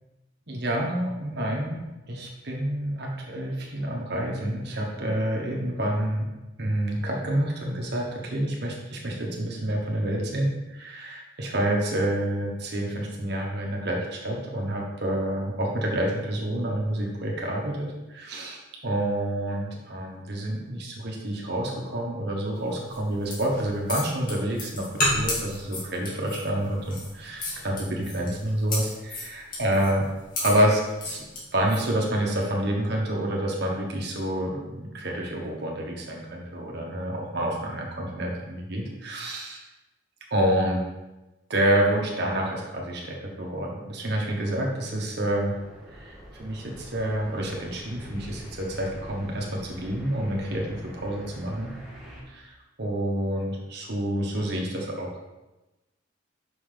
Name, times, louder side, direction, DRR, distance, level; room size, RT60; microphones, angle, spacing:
voice 1, 0.5-1.8 2.1-6.3 6.6-18.6 18.8-30.0 30.4-31.3 31.5-39.6 40.3-40.8 41.5-45.6 45.9-51.7 52.3-55.1, right 1 dB, 60° right, -1 dB, 1.3 m, -28 dB
sound 1, 22.9-31.9, left 1 dB, 45° left, 2.3 m, -32 dB
sound 2, 45.5-52.2, equal, ahead, 1.6 m, -45 dB
6.0 x 5.7 x 3.4 m, 1.1 s
head